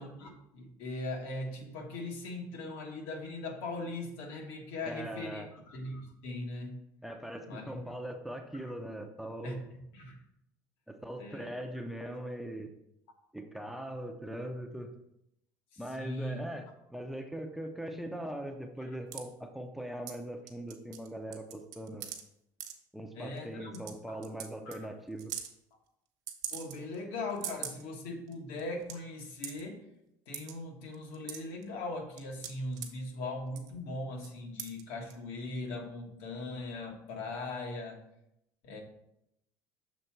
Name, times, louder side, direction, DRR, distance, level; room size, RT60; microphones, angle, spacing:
voice 1, 0.0-6.7 7.5-7.8 8.5-8.7 9.4-9.6 9.9-10.2 11.2-11.5 15.7-16.4 23.1-23.8 24.1-24.2 24.6-24.9 26.5-29.8 30.3-38.0 38.6-38.8, left 2 dB, 80° left, 2 dB, 1.4 m, -40 dB
voice 2, 4.9-5.5 7.0-9.6 10.9-12.7 13.3-14.9 15.8-22.1 22.9-25.3, right 1 dB, ahead, 5 dB, 0.4 m, -41 dB
sound 1, 19.1-19.2 20.1-20.2 20.5-21.1 21.3-22.2 22.6-22.7 23.4-23.5 23.7-23.9 24.2-24.5 24.7-24.8 25.2-25.5 26.3-27.0 27.3-27.8 28.3-28.4 28.6-28.9 29.4-29.6 30.3-30.5 30.9-31.6 32.2-32.9 33.5-33.8 34.2-34.3 34.6-34.8 35.1-35.2, right 9 dB, 55° right, 1.0 m, -40 dB
6.7 x 3.5 x 4.5 m, 0.80 s
cardioid pair, 155°, 8 cm